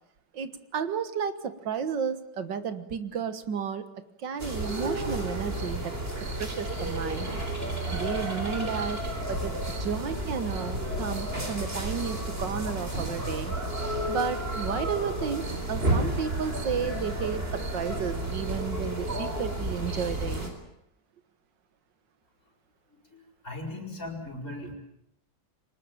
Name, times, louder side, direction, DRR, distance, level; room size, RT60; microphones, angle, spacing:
voice 1, 0.3-3.9 4.2-7.3 7.9-9.0 9.3-13.6 14.1-20.5, right 7 dB, 70° right, 12 dB, 2.1 m, -33 dB
sound 1, 4.4-20.5, right 1 dB, 30° right, 4.5 m, -32 dB
sound 2, 5.1-5.3 6.5-6.6 7.9-8.1 9.3-9.8 10.2-10.3 10.8-11.4 12.0-12.1 12.3-12.5 12.7-13.1, left 3 dB, 70° left, 4.7 m, -40 dB
voice 2, 22.9-24.7, left 2 dB, 40° left, -1 dB, 6.0 m, -39 dB
24.0 x 20.0 x 9.1 m, 0.81 s
omnidirectional pair, 2.1 m